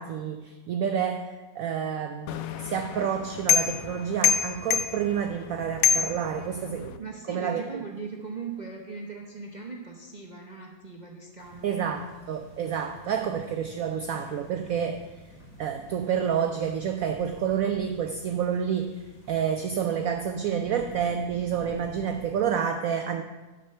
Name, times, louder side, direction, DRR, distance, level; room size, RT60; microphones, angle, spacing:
voice 1, 0.0-7.0 7.3-7.6 11.6-15.0 15.6-23.2, right 8 dB, 90° right, 6 dB, 0.7 m, -29 dB
sound 1, 2.3-7.0, left 8 dB, 80° left, 0.7 m, -27 dB
voice 2, 7.0-12.0, right 4 dB, 50° right, 0 dB, 0.5 m, -39 dB
sound 2, 11.4-22.5, equal, 45° left, 2.5 m, -49 dB
8.5 x 5.4 x 6.6 m, 1.2 s
omnidirectional pair, 2.0 m